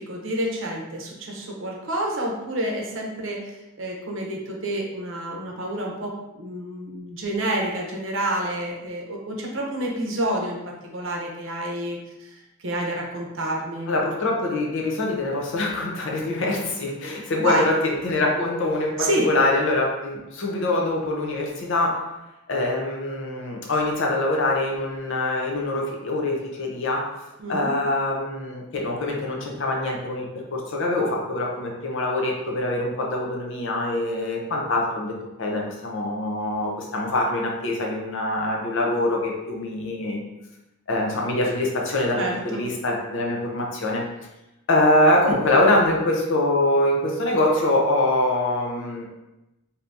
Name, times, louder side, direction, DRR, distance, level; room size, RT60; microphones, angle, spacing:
voice 1, 0.0-12.3 12.6-13.9 17.4-17.7 19.0-19.3 27.4-27.7 42.2-42.6, right 1 dB, 60° right, -1 dB, 0.7 m, -28 dB
voice 2, 13.9-22.0 22.5-27.1 27.5-40.2 40.9-44.0 44.7-49.1, left 1 dB, 60° left, -1 dB, 0.6 m, -24 dB
2.7 x 2.6 x 3.4 m, 0.96 s
head